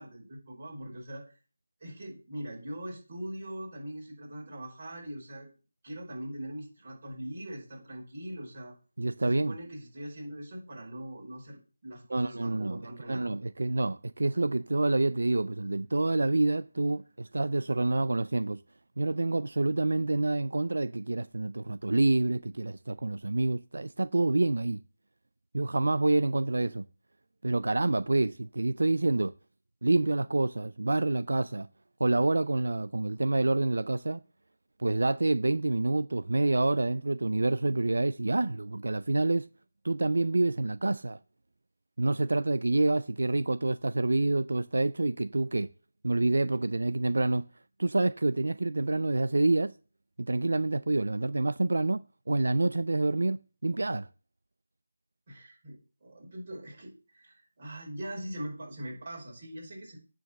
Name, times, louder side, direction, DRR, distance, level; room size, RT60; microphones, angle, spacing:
voice 1, 0.0-1.3 1.8-5.5 5.8-8.7 9.2-13.2 55.3-60.0, right 1 dB, 30° right, 5.5 m, -41 dB
voice 2, 9.0-9.6 12.1-12.8 13.1-18.6 19.0-24.8 25.5-26.8 27.4-29.3 29.8-31.7 32.0-34.2 34.8-39.5 39.8-41.2 42.0-45.7 46.0-47.5 47.8-49.7 50.2-54.1, right 2 dB, 75° right, 0.4 m, -27 dB
9.0 x 4.8 x 7.1 m
figure-of-eight pair, 170°, 0 cm